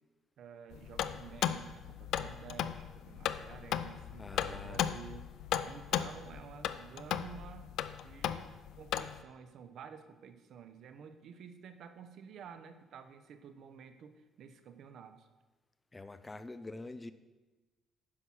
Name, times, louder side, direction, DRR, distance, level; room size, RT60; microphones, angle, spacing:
voice 1, 0.4-5.3 5.6-15.3, right 7 dB, 65° right, 10 dB, 0.9 m, -51 dB
sound 1, 0.7-9.2, left 10 dB, 75° left, 0.4 m, -36 dB
voice 2, 4.2-4.8 15.9-17.1, left 2 dB, 15° left, 12 dB, 0.5 m, -45 dB
9.9 x 5.8 x 6.2 m, 1.2 s
cardioid pair, 120°, 0 cm